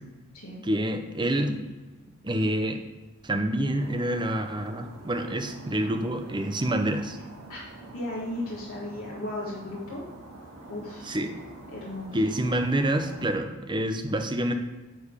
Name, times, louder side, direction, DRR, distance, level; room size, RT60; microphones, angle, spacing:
voice 1, 0.6-1.6 2.2-2.8 3.2-7.2 11.1-11.3 12.1-14.5, right 1 dB, 20° right, 6 dB, 0.7 m, -27 dB
sound 1, 3.7-13.3, right 2 dB, 90° right, 1.9 m, -46 dB
voice 2, 7.9-10.0 10.7-11.1 11.7-12.2, left 1 dB, 70° left, -5 dB, 1.5 m, -35 dB
9.7 x 3.5 x 6.7 m, 1.1 s
head